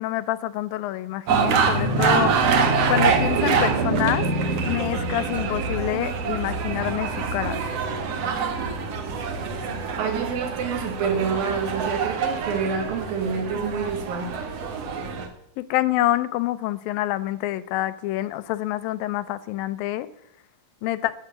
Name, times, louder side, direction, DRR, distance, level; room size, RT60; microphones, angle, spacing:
voice 1, 0.0-2.3 2.9-4.3 4.6-7.6 15.6-20.1 20.8-21.1, left 15 dB, 90° left, 14 dB, 2.5 m, -27 dB
sound 1, 1.3-15.3, right 5 dB, 55° right, 2.1 m, -25 dB
voice 2, 10.0-14.3, right 5 dB, 85° right, 5 dB, 3.7 m, -27 dB
12.5 x 8.5 x 6.9 m, 0.76 s
omnidirectional pair, 4.0 m